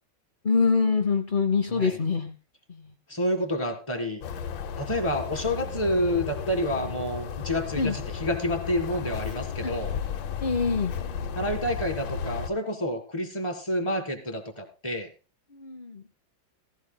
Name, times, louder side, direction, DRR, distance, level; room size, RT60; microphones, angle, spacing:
voice 1, 0.4-2.3 2.7-2.8 7.8-7.9 9.6-9.7 10.4-10.9 15.5-16.0, left 4 dB, 40° left, 4 dB, 0.8 m, -24 dB
voice 2, 3.1-4.2 4.8-9.9 11.4-15.1, equal, 15° left, 4 dB, 1.7 m, -29 dB
sound 1, 4.2-12.5, left 7 dB, 80° left, 1.7 m, -34 dB
15.5 x 15.0 x 2.2 m, 0.31 s
omnidirectional pair, 2.1 m